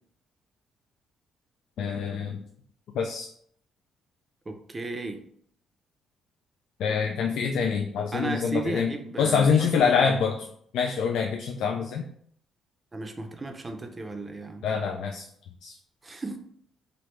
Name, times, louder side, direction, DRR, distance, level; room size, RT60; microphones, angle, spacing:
voice 1, 1.8-2.4 2.9-3.3 6.8-8.9 9.2-10.5 10.7-12.1 14.6-15.3 15.6-15.8, left 6 dB, 80° left, 3 dB, 0.3 m, -25 dB
voice 2, 4.5-5.2 8.1-10.1 12.9-14.6 16.0-16.4, right 2 dB, 25° right, 5 dB, 0.5 m, -34 dB
3.2 x 2.5 x 3.0 m, 0.64 s
cardioid pair, 90°, 0 cm